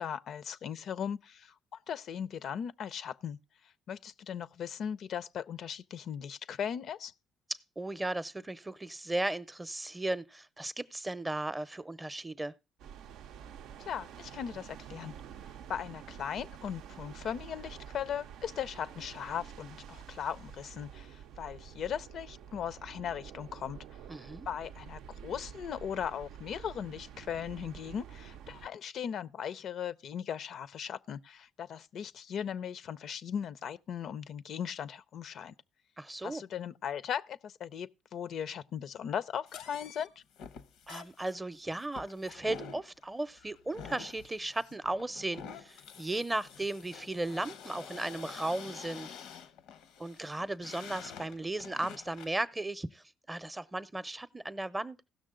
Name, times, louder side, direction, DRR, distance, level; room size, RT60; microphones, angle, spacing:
voice 1, 0.0-3.4 3.9-7.1 13.9-15.1 15.7-23.8 24.5-35.5 36.2-40.2, left 8 dB, 65° left, 0.4 m, -38 dB
voice 2, 7.5-12.5 24.1-24.5 36.0-36.4 40.9-49.1 50.0-55.0, right 2 dB, 15° right, 0.6 m, -36 dB
sound 1, 12.8-28.7, right 8 dB, 80° right, 0.4 m, -49 dB
sound 2, 39.5-52.4, left 6 dB, 85° left, 0.8 m, -48 dB
16.5 x 6.3 x 3.7 m
cardioid pair, 85°, 0 cm